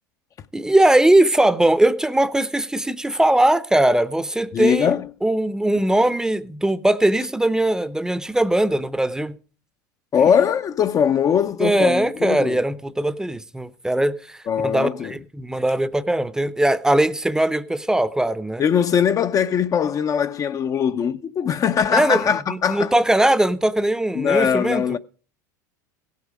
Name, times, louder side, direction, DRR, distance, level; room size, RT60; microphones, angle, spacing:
voice 1, 0.5-4.9 5.2-9.3 11.6-14.4 14.6-18.6 21.9-22.2 22.7-24.8, right 1 dB, 5° right, 0.7 m, -20 dB
voice 2, 4.5-5.1 10.1-12.6 14.5-15.1 18.6-22.9 24.2-25.0, left 7 dB, 35° left, 0.5 m, -21 dB
16.0 x 8.3 x 4.9 m
hypercardioid pair, 100°, 10 cm